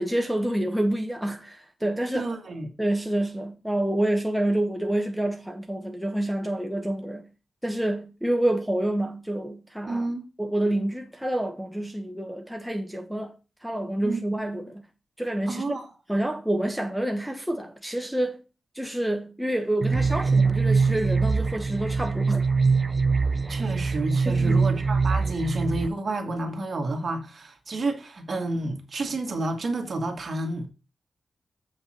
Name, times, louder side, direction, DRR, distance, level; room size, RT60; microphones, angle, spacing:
voice 1, 0.0-2.3 2.8-7.3 7.6-10.1 10.4-13.3 13.6-14.8 15.2-15.8 16.1-18.4 18.7-22.5 24.3-24.7, right 1 dB, 5° right, 1.0 m, -28 dB
voice 2, 2.1-2.7 9.9-10.3 14.0-14.2 15.5-15.8 23.5-30.7, right 2 dB, 45° right, 2.1 m, -30 dB
sound 1, 19.8-25.9, right 4 dB, 30° right, 0.4 m, -23 dB
7.6 x 6.3 x 4.4 m
wide cardioid pair, 100°, 0 cm